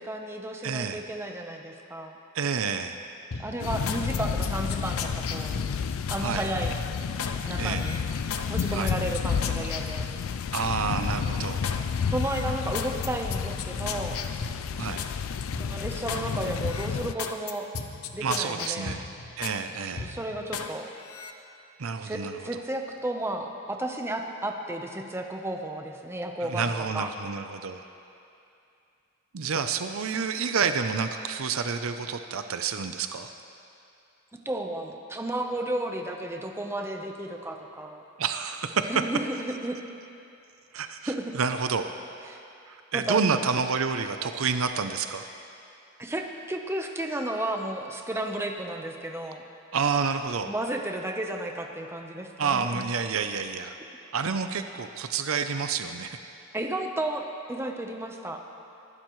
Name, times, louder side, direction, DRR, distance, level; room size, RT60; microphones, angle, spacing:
voice 1, 0.0-2.2 3.4-5.6 6.1-6.8 7.5-8.0 8.5-10.1 12.1-14.2 15.6-17.7 18.1-19.0 20.0-20.9 22.0-26.7 26.9-27.1 34.4-38.0 38.9-39.8 41.1-41.4 42.3-42.4 42.9-43.2 46.0-49.4 50.4-52.8 56.5-58.4, right 1 dB, 10° right, 3 dB, 0.9 m, -33 dB
voice 2, 0.6-1.0 2.3-3.0 6.2-6.5 7.6-7.9 8.7-8.9 10.5-11.6 14.8-15.0 18.2-19.1 19.4-20.1 21.8-22.4 26.4-27.8 29.3-33.3 38.2-39.0 40.7-41.9 42.7-45.3 49.7-50.5 52.4-53.8 54.1-56.2, right 5 dB, 70° right, 8 dB, 0.6 m, -29 dB
sound 1, 3.3-6.3 6.6-7.4 7.7-10.7 11.1-11.8 12.2-15.1 15.5-16.3 16.6-19.6 20.0-20.7 21.1-21.3, left 5 dB, 85° left, 0.8 m, -37 dB
sound 2, 3.6-17.1, left 6 dB, 70° left, 0.4 m, -31 dB
24.0 x 12.0 x 3.2 m, 2.6 s
head